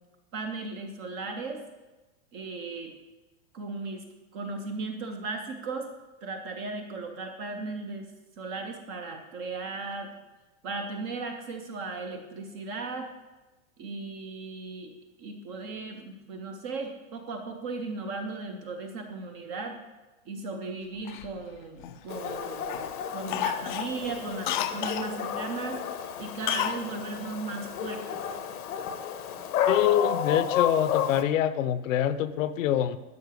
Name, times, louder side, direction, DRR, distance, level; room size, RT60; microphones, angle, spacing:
voice 1, 0.3-1.6 2.3-3.0 3.5-4.1 4.3-5.9 6.2-8.1 8.4-10.1 10.6-13.1 13.8-14.9 15.2-19.8 20.3-28.2, right 3 dB, 20° right, 5 dB, 0.5 m, -36 dB
Cough, 21.1-22.3 22.7-22.9 23.3-25.1 26.5-26.8 27.1-27.2, left 11 dB, 35° left, 0.5 m, -31 dB
Dog, 22.1-31.2, left 8 dB, 90° left, 1.4 m, -32 dB
voice 2, 29.7-33.0, left 10 dB, 60° left, 14 dB, 0.8 m, -25 dB
12.0 x 5.5 x 8.1 m, 1.1 s
supercardioid pair, 170°, 43 cm